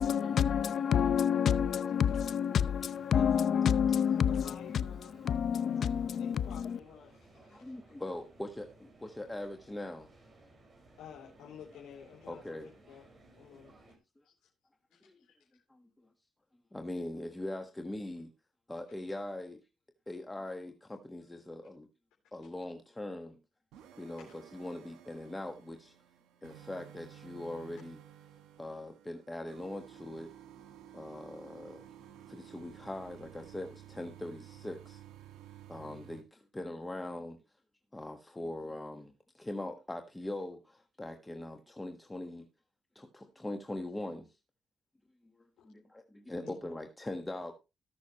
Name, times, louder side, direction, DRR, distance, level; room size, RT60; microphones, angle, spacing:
voice 1, 0.0-4.9 5.2-6.8, left 8 dB, 60° left, 0.7 m, -28 dB
voice 2, 0.7-1.0 2.1-2.3 2.6-2.8 3.1-3.7 4.1-5.1 5.9-7.7 11.0-12.5 12.9-13.1 13.4-13.7 14.2-14.3 14.9-15.3 24.2-24.3 45.6-45.7 46.4-46.5, left 8 dB, 90° left, 3.2 m, -52 dB
sound 1, 2.9-14.0, right 2 dB, 30° right, 4.8 m, -60 dB
voice 3, 7.5-10.1 12.3-12.7 15.0-15.2 15.7-15.8 16.7-18.3 18.7-19.6 20.1-21.9 22.3-23.4 24.0-25.9 26.4-28.0 28.6-30.3 30.9-31.9 32.3-35.0 35.7-37.4 37.9-42.5 42.9-44.3 45.6-47.5, left 1 dB, 15° left, 1.4 m, -41 dB
sound 2, 23.7-36.2, right 11 dB, 85° right, 1.5 m, -54 dB
18.5 x 6.3 x 3.0 m
cardioid pair, 90°, 0 cm